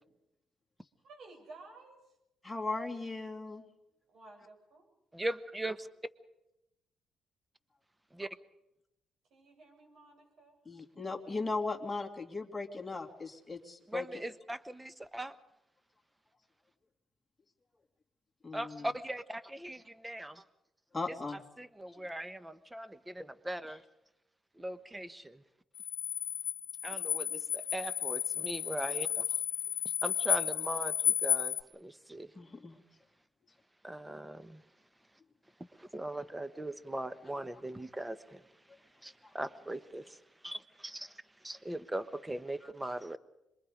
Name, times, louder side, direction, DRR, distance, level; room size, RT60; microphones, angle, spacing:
voice 1, 1.0-2.1 4.1-4.9 9.3-10.6, right 2 dB, 65° right, 1 dB, 7.9 m, -54 dB
voice 2, 2.4-3.6 10.7-14.1 18.4-18.9 20.9-21.4 32.4-32.8 39.2-39.3, left 3 dB, 15° left, 3 dB, 2.8 m, -37 dB
voice 3, 5.1-5.9 8.1-8.3 13.9-15.4 18.5-20.4 21.6-23.8 24.6-25.4 26.8-29.2 30.0-32.3 33.8-34.6 35.8-38.4 39.0-41.1 41.4-43.2, right 1 dB, 10° right, 13 dB, 1.1 m, -40 dB
sound 1, 25.7-31.6, left 10 dB, 60° left, 1.1 m, -33 dB
26.5 x 22.5 x 5.2 m, 0.90 s
cardioid pair, 90°, 0 cm